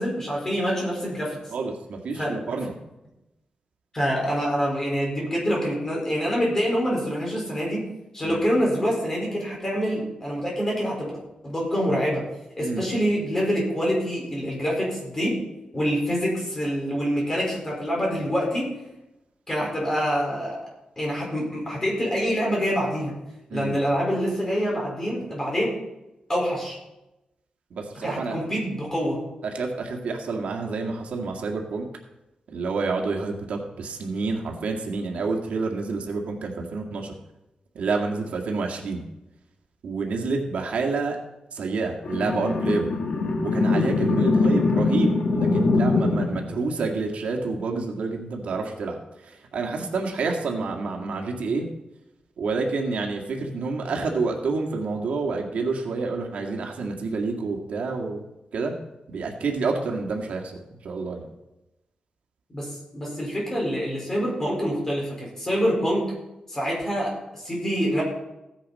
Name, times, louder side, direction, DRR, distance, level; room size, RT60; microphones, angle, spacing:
voice 1, 0.0-1.4 2.1-2.4 3.9-7.8 8.1-11.1 11.4-12.3 12.6-15.4 15.7-18.7 19.5-20.6 21.0-23.1 23.5-25.7 26.3-26.8 28.0-29.2 62.5-66.1 66.5-68.0, equal, 20° left, -3 dB, 4.9 m, -26 dB
voice 2, 1.5-2.7 8.2-8.4 12.6-12.8 23.5-23.8 27.7-28.5 29.5-31.9 32.5-37.1 37.7-39.0 39.8-41.2 41.5-42.9 43.4-51.7 52.4-58.2 58.5-58.7 59.1-61.3, right 4 dB, 85° right, 1 dB, 2.0 m, -28 dB
sound 1, 42.0-46.4, left 3 dB, 85° left, 2.0 m, -22 dB
15.5 x 10.0 x 4.2 m, 0.94 s
wide cardioid pair, 170°, 2 cm